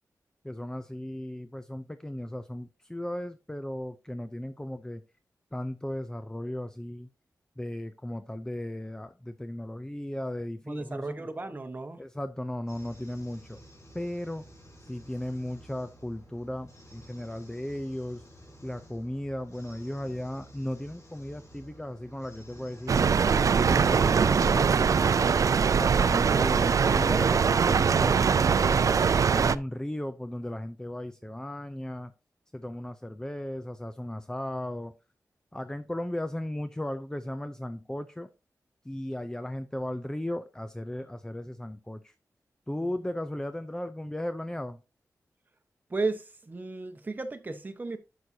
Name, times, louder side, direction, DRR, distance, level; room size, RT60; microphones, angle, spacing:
voice 1, 0.4-5.0 5.5-7.1 7.6-11.3 12.0-13.6 13.9-14.5 14.8-18.2 18.6-23.1 23.5-24.7 25.7-28.8 29.3-32.1 32.5-34.9 35.5-38.3 38.8-42.1 42.7-44.8, left 1 dB, 10° left, 0.5 m, -36 dB
voice 2, 10.7-12.0 42.8-43.1 45.9-48.0, right 3 dB, 30° right, 1.1 m, -34 dB
sound 1, 12.7-25.2, equal, 60° left, 3.6 m, -51 dB
sound 2, 22.9-29.6, right 6 dB, 60° right, 0.4 m, -22 dB
11.5 x 6.2 x 2.8 m
wide cardioid pair, 100°, 6 cm